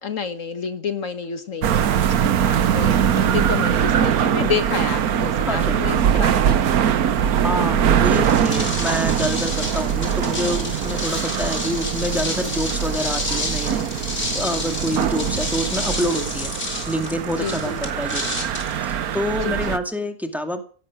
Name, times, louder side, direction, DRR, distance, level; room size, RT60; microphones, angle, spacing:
voice 1, 0.0-7.0 7.2-7.3 17.4-17.8 19.4-19.8, left 6 dB, 60° left, 10 dB, 1.7 m, -29 dB
sound 1, 1.6-19.8, right 9 dB, 90° right, 1.4 m, -22 dB
voice 2, 5.5-5.9 7.4-16.5 16.9-18.5 18.7-20.6, equal, ahead, 6 dB, 2.1 m, -27 dB
sound 2, 8.0-19.5, left 2 dB, 45° left, 4.0 m, -30 dB
17.0 x 13.0 x 6.1 m, 0.42 s
omnidirectional pair, 1.5 m